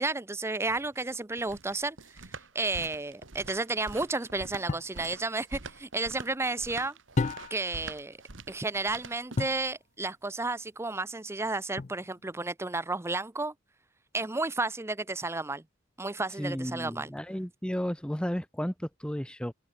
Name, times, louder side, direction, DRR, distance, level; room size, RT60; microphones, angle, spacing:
voice 1, 0.0-2.0 2.5-7.0 7.5-8.2 8.5-13.5 14.1-15.6 16.0-17.1, right 3 dB, 15° right, 0.6 m, -32 dB
sound 1, 0.7-9.6, right 3 dB, 70° right, 2.3 m, -45 dB
sound 2, 4.7-5.0 7.2-7.8 9.4-9.7 11.8-12.3, left 3 dB, 35° left, 0.5 m, -32 dB
voice 2, 16.4-19.5, equal, 5° left, 1.1 m, -33 dB
head